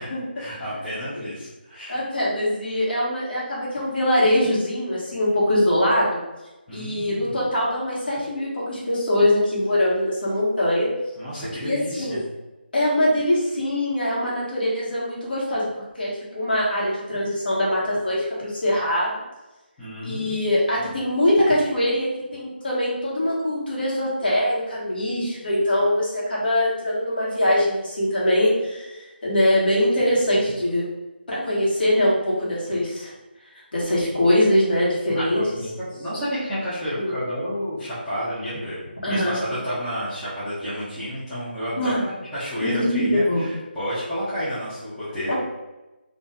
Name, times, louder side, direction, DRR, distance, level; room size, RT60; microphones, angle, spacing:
voice 1, 0.4-2.0 6.7-7.5 11.2-12.2 19.8-20.4 20.8-20.9 35.1-45.3, equal, ahead, -17 dB, 0.3 m, -31 dB
voice 2, 1.9-6.2 6.7-10.9 11.6-12.2 12.7-15.7 15.9-16.1 16.3-19.2 20.0-30.8 31.3-33.1 33.7-35.4 36.9-37.2 39.0-39.4 41.7-42.1 42.6-43.4 45.3-45.4, left 1 dB, 60° left, -6 dB, 1.3 m, -22 dB
2.5 x 2.3 x 3.4 m, 1.0 s
figure-of-eight pair, 175°, 6 cm